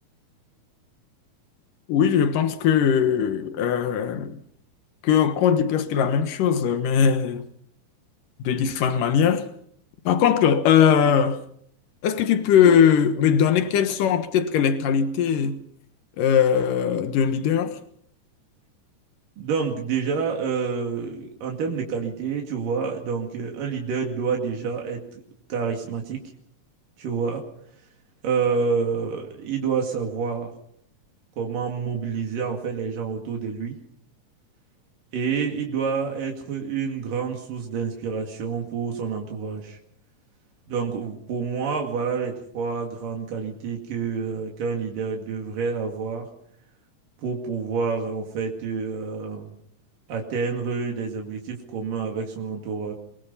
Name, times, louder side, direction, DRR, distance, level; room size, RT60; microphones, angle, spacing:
voice 1, 1.9-4.4 5.0-7.5 8.4-9.5 10.1-11.4 12.0-15.6 16.2-17.8, left 8 dB, 90° left, 2.9 m, -20 dB
voice 2, 19.4-25.2 25.5-26.2 27.0-27.5 27.8-27.9 28.2-30.5 31.4-33.8 35.1-39.8 40.7-46.3 47.2-49.5 50.1-52.9, right 5 dB, 90° right, 4.0 m, -28 dB
23.5 x 23.0 x 5.6 m
omnidirectional pair, 3.7 m